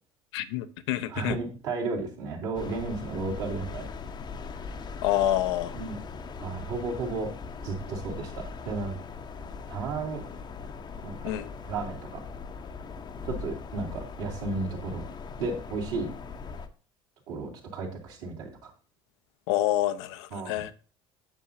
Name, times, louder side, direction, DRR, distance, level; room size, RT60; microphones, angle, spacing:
voice 1, 0.3-1.4 5.0-5.8 11.2-11.5 19.5-20.7, left 13 dB, 60° left, 0.6 m, -27 dB
voice 2, 1.1-3.9 5.7-6.0 6.4-7.3 7.6-8.9 9.7-10.2 11.0-11.3 11.6-12.2 13.2-15.0 15.4-16.1 17.3-18.7 20.3-20.6, right 3 dB, 65° right, 2.3 m, -33 dB
sound 1, 2.5-16.7, left 5 dB, 30° left, 0.8 m, -40 dB
8.9 x 7.1 x 2.7 m
figure-of-eight pair, 65°, 16 cm